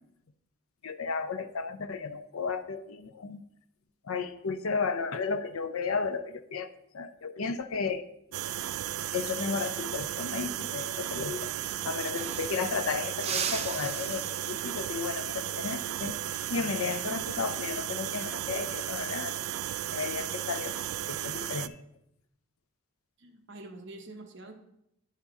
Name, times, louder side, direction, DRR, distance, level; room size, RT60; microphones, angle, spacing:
voice 1, 0.8-3.4 4.0-6.7 6.9-8.0 9.1-11.5 11.8-16.2 16.5-19.3 19.9-20.7 21.1-21.8, left 5 dB, 90° left, 11 dB, 0.6 m, -33 dB
sound 1, 8.3-21.7, right 12 dB, 90° right, 0.3 m, -35 dB
sound 2, 11.8-12.8 13.2-14.9 17.4-17.7 19.1-19.6, right 7 dB, 30° right, 0.5 m, -38 dB
voice 2, 23.2-24.5, right 2 dB, 55° right, 4 dB, 0.9 m, -46 dB
10.0 x 5.5 x 3.5 m, 0.79 s
head